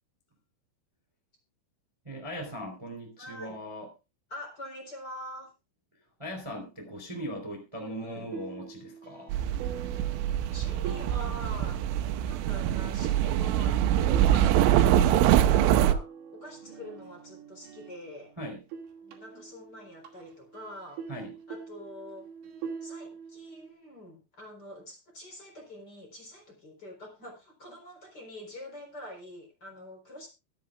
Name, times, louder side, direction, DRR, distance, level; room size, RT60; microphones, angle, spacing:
voice 1, 2.0-3.9 6.2-9.3 18.4-18.6 21.1-21.3, equal, 5° right, 3 dB, 2.8 m, -39 dB
voice 2, 3.2-3.6 4.3-5.5 7.7-8.4 10.5-13.8 14.2-18.3 19.0-21.0 21.5-22.3 22.8-30.3, left 1 dB, 20° left, 2 dB, 4.0 m, -45 dB
sound 1, 8.3-18.3 18.6-23.7, right 6 dB, 65° right, 4.5 m, -44 dB
sound 2, 9.3-15.9, right 11 dB, 90° right, 3.4 m, -24 dB
24.0 x 8.7 x 2.4 m, 0.27 s
omnidirectional pair, 5.8 m